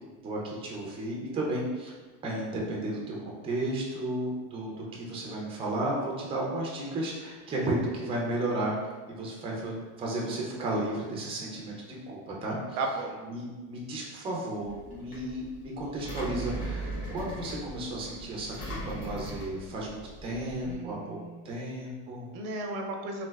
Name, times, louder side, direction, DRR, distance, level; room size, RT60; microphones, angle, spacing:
voice 1, 0.2-1.9 2.2-8.7 9.1-11.7 12.1-12.8 13.2-21.2 21.4-22.3, right 1 dB, 15° right, -3 dB, 0.4 m, -33 dB
voice 2, 12.8-13.2 20.6-21.5 22.3-23.3, right 2 dB, 90° right, 2 dB, 0.6 m, -34 dB
Engine, 14.6-20.7, right 1 dB, 70° left, 1.3 m, -39 dB
3.2 x 2.5 x 2.3 m, 1.3 s
cardioid pair, 140°, 40 cm